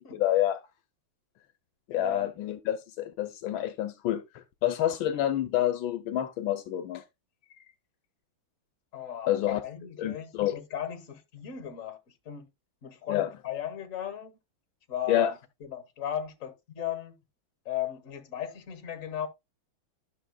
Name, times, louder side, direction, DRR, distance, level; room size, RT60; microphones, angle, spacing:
voice 1, 0.1-0.6 1.9-7.0 9.3-9.6 10.0-10.6 13.1-13.3 15.1-15.3, left 12 dB, 80° left, 1.5 m, -28 dB
voice 2, 1.9-2.3 8.9-9.4 9.6-12.0 12.3-12.5 12.8-14.3 14.9-17.2 17.7-19.3, left 9 dB, 45° left, 1.6 m, -36 dB
12.0 x 6.6 x 2.3 m
omnidirectional pair, 2.2 m